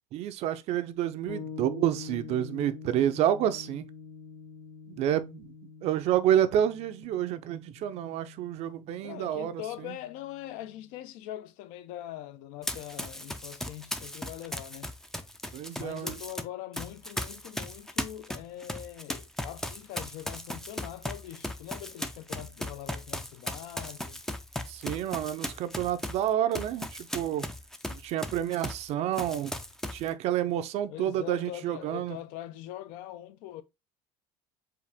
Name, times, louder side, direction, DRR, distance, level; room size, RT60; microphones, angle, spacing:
voice 1, 0.1-3.9 4.9-5.5 5.8-10.0 15.5-16.2 24.7-27.5 27.9-29.5 29.9-32.2, right 11 dB, 50° right, 0.5 m, -29 dB
sound 1, 1.3-11.0, left 5 dB, 90° left, 0.9 m, -46 dB
voice 2, 9.0-14.9 15.8-24.2 30.9-33.6, left 13 dB, 70° left, 0.5 m, -42 dB
Run, 12.6-16.4 16.7-28.9 29.1-30.1, left 1 dB, 5° left, 0.4 m, -37 dB
4.8 x 2.5 x 3.4 m
cardioid pair, 135°, 14 cm